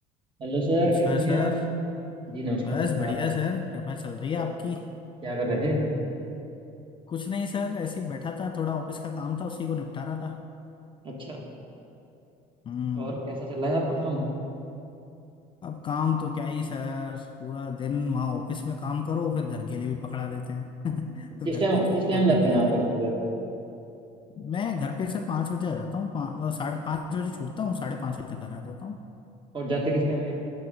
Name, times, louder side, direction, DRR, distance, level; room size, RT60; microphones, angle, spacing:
voice 1, 0.4-1.5 2.3-3.1 4.4-4.5 5.2-5.8 11.0-11.4 13.0-14.2 21.4-23.1 29.5-30.3, right 1 dB, 30° right, -1 dB, 1.5 m, -26 dB
voice 2, 1.0-1.7 2.6-4.9 7.1-10.4 12.6-13.2 13.9-14.1 15.6-21.8 22.1-22.9 24.4-29.0, left 6 dB, 30° left, 5 dB, 0.4 m, -31 dB
10.5 x 3.8 x 5.1 m, 2.8 s
cardioid pair, 115°, 17 cm